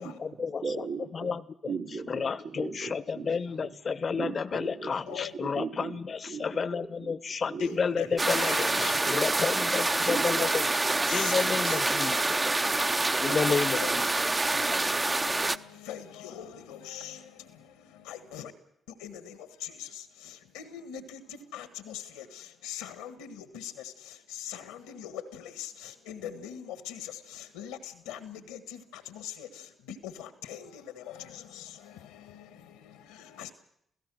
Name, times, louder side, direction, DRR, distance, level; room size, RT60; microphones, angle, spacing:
voice 1, 0.0-0.6 1.1-1.7 2.1-10.6 11.1-12.2 13.2-14.1, left 5 dB, 50° left, 17 dB, 0.9 m, -31 dB
voice 2, 0.6-1.3 1.7-3.3 3.6-3.7 4.1-7.1 7.5-9.3 10.0-10.3 10.6-12.3 13.3-13.5 14.6-14.8, right 5 dB, 80° right, -3 dB, 3.4 m, -39 dB
voice 3, 7.6-9.4 10.4-10.5 11.1-18.5 18.9-33.5, left 10 dB, 85° left, 11 dB, 1.5 m, -43 dB
sound 1, 8.2-15.6, right 2 dB, 30° right, 0.8 m, -27 dB
28.0 x 16.5 x 6.3 m, 0.74 s
hypercardioid pair, 40°, 0 cm